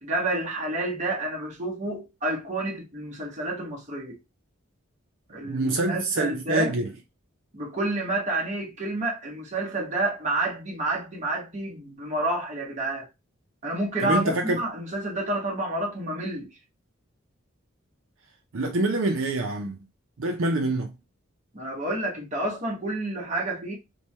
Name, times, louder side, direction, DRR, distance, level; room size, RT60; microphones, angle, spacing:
voice 1, 0.0-4.2 5.3-6.7 7.5-13.1 13.6-16.5 21.5-23.7, right 2 dB, 35° right, 1.1 m, -29 dB
voice 2, 5.4-6.9 14.0-14.6 18.5-19.8 20.2-20.9, right 2 dB, 75° right, 0.6 m, -26 dB
3.2 x 2.3 x 4.2 m
head